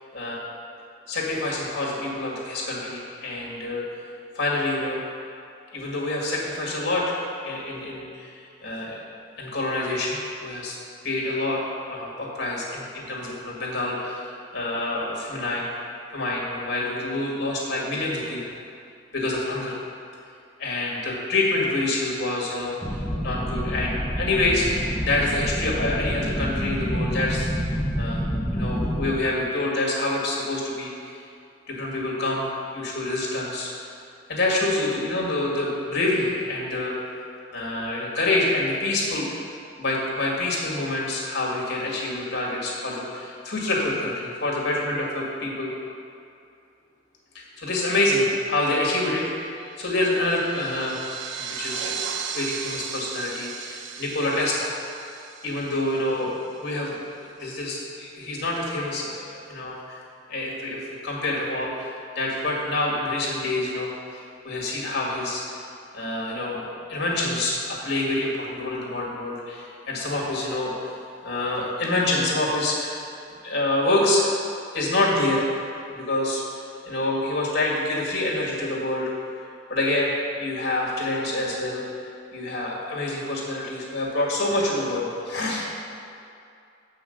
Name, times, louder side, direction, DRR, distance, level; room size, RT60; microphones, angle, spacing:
voice 1, 1.1-3.8 4.3-5.0 5.7-9.0 9.4-10.8 11.0-11.6 11.9-15.7 16.1-18.4 19.1-19.8 20.6-22.8 23.2-27.7 28.0-28.3 28.5-31.2 31.7-32.5 32.7-33.7 34.3-37.0 37.5-39.3 39.8-45.7 47.3-49.3 49.8-51.0 51.4-52.0 52.3-54.7 55.4-60.0 60.3-61.9 62.2-65.4 65.9-70.9 71.2-73.0 73.4-74.4 74.7-75.5 76.1-79.1 79.7-80.1 80.4-81.8 82.3-85.7, left 2 dB, 55° left, -4 dB, 2.0 m, -27 dB
sound 1, 22.8-29.1, equal, ahead, 0.5 m, -28 dB
sound 2, 49.6-56.4, right 7 dB, 70° right, 0.6 m, -36 dB
7.8 x 5.7 x 6.5 m, 2.5 s
head